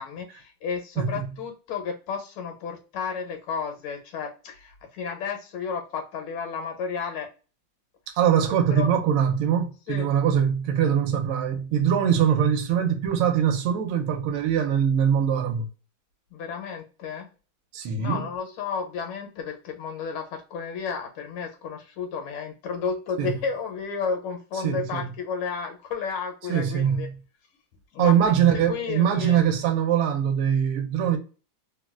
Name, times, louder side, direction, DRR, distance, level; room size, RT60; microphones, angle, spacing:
voice 1, 0.0-7.3 8.7-8.9 9.9-10.1 16.3-17.3 18.0-27.1 27.9-28.2 28.7-29.4, left 6 dB, 90° left, 1.7 m, -32 dB
voice 2, 8.1-15.7 17.7-18.2 23.2-23.3 24.6-25.0 26.5-27.1 28.0-31.2, right 8 dB, 80° right, 1.4 m, -22 dB
3.7 x 2.2 x 2.2 m
omnidirectional pair, 2.3 m